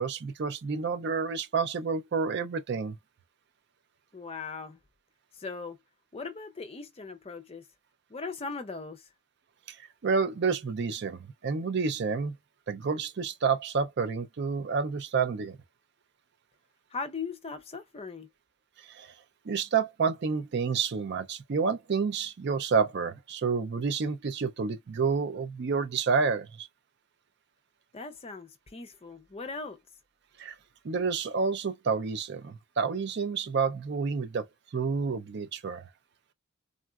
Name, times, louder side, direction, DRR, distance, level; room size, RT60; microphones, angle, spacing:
voice 1, 0.0-3.0 9.7-9.8 10.0-12.4 12.7-15.6 18.8-19.1 19.5-26.7 30.4-30.5 30.8-34.5 34.7-35.8, right 5 dB, 50° right, 0.4 m, -29 dB
voice 2, 4.1-4.8 5.4-5.8 6.1-7.7 8.1-9.1 16.9-18.3 27.9-29.8, left 4 dB, 25° left, 0.5 m, -39 dB
3.7 x 2.1 x 2.3 m
head